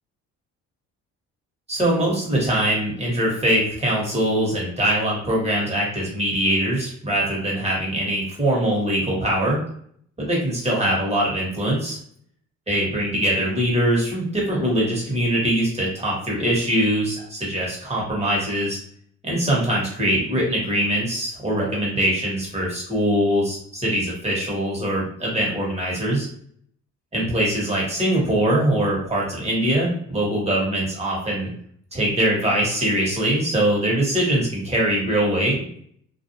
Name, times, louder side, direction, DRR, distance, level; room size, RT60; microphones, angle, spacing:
voice 1, 1.7-9.6 10.2-12.0 12.7-18.8 19.2-26.3 27.1-31.5 31.9-35.6, right 1 dB, 20° right, -4 dB, 1.3 m, -22 dB
2.5 x 2.2 x 2.8 m, 0.63 s
cardioid pair, 90°, 30 cm